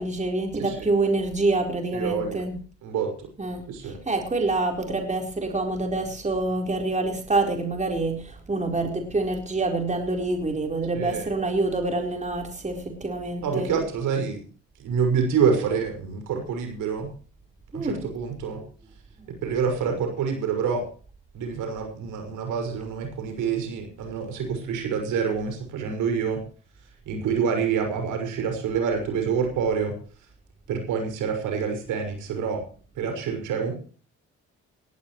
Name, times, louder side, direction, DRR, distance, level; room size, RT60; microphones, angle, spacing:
voice 1, 0.0-2.6 3.4-13.7 17.7-18.1, right 2 dB, 25° right, 2 dB, 4.2 m, -26 dB
voice 2, 1.9-2.4 2.8-3.3 3.7-4.0 10.9-11.3 13.4-14.4 14.8-17.1 17.7-18.6 19.3-20.8 21.3-26.4 27.1-29.9 30.7-32.6 33.0-33.7, right 6 dB, 90° right, 4 dB, 5.9 m, -27 dB
18.5 x 15.5 x 3.2 m, 0.41 s
cardioid pair, 90°, 30 cm